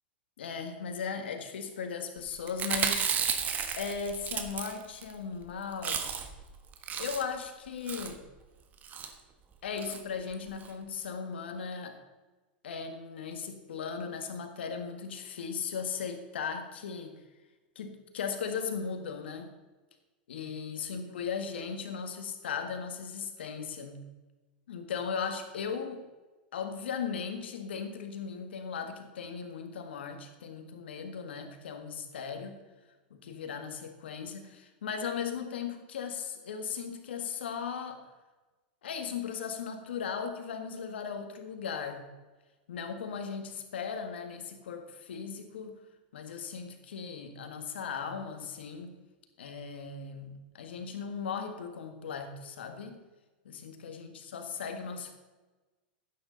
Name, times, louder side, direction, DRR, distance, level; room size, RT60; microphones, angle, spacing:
voice 1, 0.4-3.1 3.8-6.1 7.0-8.2 9.6-12.0 12.6-17.2 17.8-19.5 20.3-24.1 24.7-26.0 26.5-32.6 33.1-38.1 38.8-42.1 42.7-45.8 46.1-48.9 49.4-53.0 53.5-55.2, left 6 dB, 80° left, 6 dB, 1.8 m, -37 dB
Chewing mastication, 2.5-5.1 5.4-5.5 5.7-6.4 6.7-7.4 7.9-8.2 8.8-9.1 9.8-10.0 10.3-10.4 10.6-10.7, right 7 dB, 30° right, 1.3 m, -33 dB
12.0 x 9.5 x 3.9 m, 1.2 s
hypercardioid pair, 115°, 6 cm